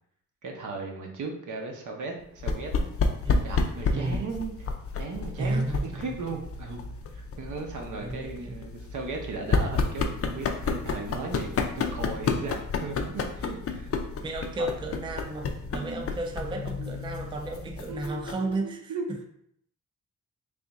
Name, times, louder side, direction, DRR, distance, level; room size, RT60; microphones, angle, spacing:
voice 1, 0.4-2.9 3.4-4.7 5.0-6.8 7.1-11.5 11.8-13.9 14.6-14.7 15.7-16.0 16.8-17.0 17.9-19.1, right 4 dB, 80° right, 0.8 m, -37 dB
sound 1, 2.4-18.5, left 4 dB, 50° left, 0.4 m, -31 dB
voice 2, 3.9-4.3 5.4-6.0 8.0-8.6 14.2-18.9, right 2 dB, 15° right, 0.3 m, -33 dB
3.5 x 2.4 x 4.0 m
wide cardioid pair, 145°, 30 cm